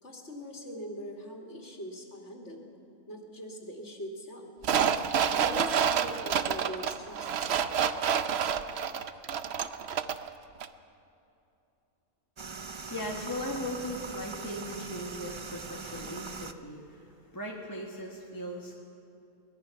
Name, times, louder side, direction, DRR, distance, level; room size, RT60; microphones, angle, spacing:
voice 1, 0.0-2.7 3.1-4.5 5.3-7.3 13.9-14.0 17.9-18.0, equal, 55° left, -1 dB, 2.9 m, -42 dB
sound 1, 4.6-10.3 10.6-10.7, right 7 dB, 55° right, 0.8 m, -28 dB
sound 2, 12.4-16.5, right 5 dB, 35° right, 0.4 m, -41 dB
voice 2, 12.9-18.7, left 1 dB, 15° left, -3 dB, 1.5 m, -38 dB
23.0 x 19.5 x 5.8 m, 2.7 s
omnidirectional pair, 1.4 m